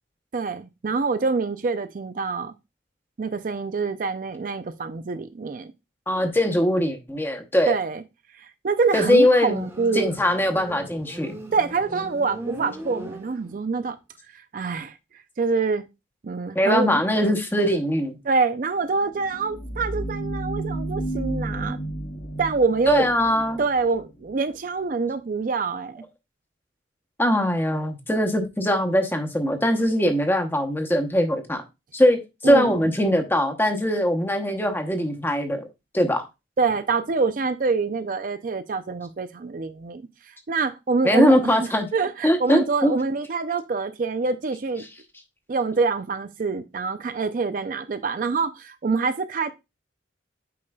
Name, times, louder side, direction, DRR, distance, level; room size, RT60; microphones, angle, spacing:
voice 1, 0.3-2.5 3.2-5.7 7.7-8.0 8.4-10.1 11.5-14.0 14.3-14.9 15.4-15.8 16.2-17.0 18.2-21.8 22.4-23.1 23.6-26.0 32.4-32.7 36.6-40.0 40.5-44.8 45.5-49.5, right 4 dB, 45° right, 0.4 m, -25 dB
voice 2, 6.1-7.7 8.9-9.6 9.9-11.4 16.5-18.2 22.9-23.6 27.2-31.6 31.9-35.7 35.9-36.2 41.0-41.9 42.2-43.0, equal, 10° left, 0.9 m, -21 dB
Motorcycle, 9.4-13.8, right 1 dB, 15° right, 1.1 m, -39 dB
sound 1, 18.8-24.4, right 1 dB, 85° left, 2.5 m, -32 dB
8.5 x 5.2 x 2.3 m
head